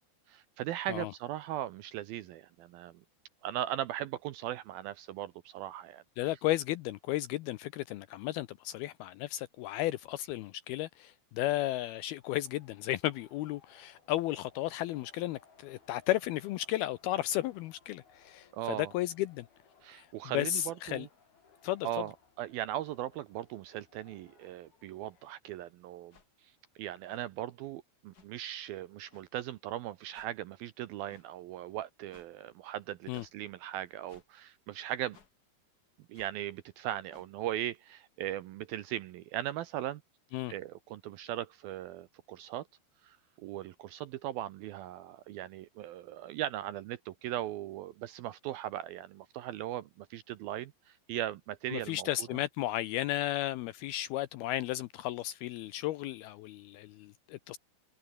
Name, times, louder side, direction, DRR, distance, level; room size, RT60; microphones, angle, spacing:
voice 1, 0.3-2.9 3.4-6.0 18.5-18.9 19.8-21.1 21.8-26.2 26.4-26.5 26.8-35.2 36.1-40.0 40.5-42.7 43.0-52.1, right 13 dB, 75° right, 2.3 m, -38 dB
voice 2, 6.2-19.5 19.9-20.1 20.3-21.1 21.6-21.9 33.1-33.3 40.3-40.5 51.7-57.6, left 15 dB, 80° left, 2.3 m, -34 dB
sound 1, 12.2-25.3, left 6 dB, 60° left, 6.6 m, -64 dB
sound 2, 26.1-26.3 27.1-27.2 28.1-28.3 29.1-29.2 30.1-30.3 31.1-31.3 32.1-32.3 33.1-33.3 34.1-34.3 35.1-35.3 36.1-36.3 37.1-37.3, left 5 dB, 40° left, 1.4 m, -61 dB
omnidirectional pair, 5.1 m